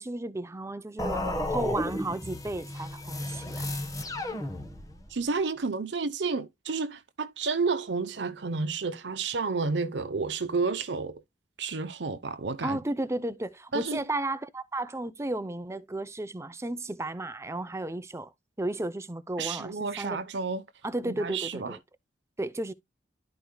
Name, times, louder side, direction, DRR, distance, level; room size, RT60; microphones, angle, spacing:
voice 1, 0.0-3.7 12.6-18.3 18.6-20.2 20.8-21.8 22.4-22.7, right 2 dB, 15° right, 0.6 m, -33 dB
sound 1, 1.0-5.1, left 1 dB, 20° left, 1.4 m, -33 dB
voice 2, 5.1-11.2 11.6-12.8 13.7-14.0 19.4-20.6 21.0-21.8, right 4 dB, 75° right, 0.8 m, -31 dB
12.0 x 4.7 x 2.2 m
head